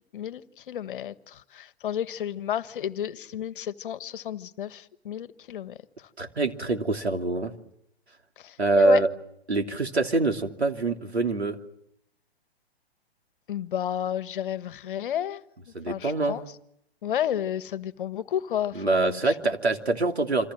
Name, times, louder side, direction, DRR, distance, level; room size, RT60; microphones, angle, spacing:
voice 1, 0.1-5.8 8.4-9.0 13.5-15.4 15.9-16.4 17.0-19.2, left 10 dB, 55° left, 1.4 m, -31 dB
voice 2, 6.2-7.5 8.6-9.1 9.5-11.6 15.7-16.4 18.7-20.5, right 2 dB, 90° right, 3.1 m, -24 dB
27.5 x 26.5 x 7.7 m
figure-of-eight pair, 120°, 31 cm